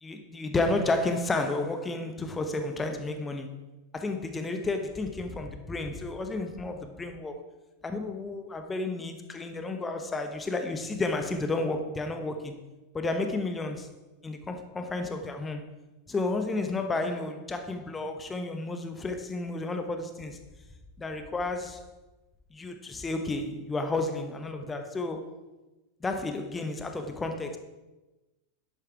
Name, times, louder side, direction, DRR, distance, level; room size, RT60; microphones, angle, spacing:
voice 1, 0.0-3.5 3.9-7.4 7.8-12.5 12.9-13.9 14.2-15.6 16.1-20.4 21.0-21.8 22.5-25.3 26.0-27.6, left 2 dB, 15° left, 1.2 m, -32 dB
10.5 x 8.5 x 4.7 m
figure-of-eight pair, 90°, 0 cm